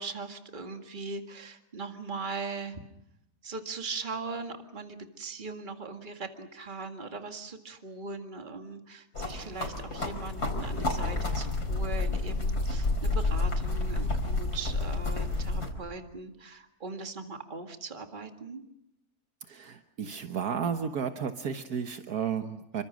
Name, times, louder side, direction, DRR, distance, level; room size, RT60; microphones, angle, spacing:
voice 1, 0.0-2.8 3.4-18.6, right 4 dB, 30° right, 5 dB, 2.1 m, -40 dB
sound 1, 9.1-15.7, left 2 dB, 85° left, 5.0 m, -30 dB
voice 2, 19.5-22.8, right 7 dB, 75° right, 7 dB, 1.7 m, -33 dB
29.0 x 24.5 x 6.3 m, 0.82 s
omnidirectional pair, 1.6 m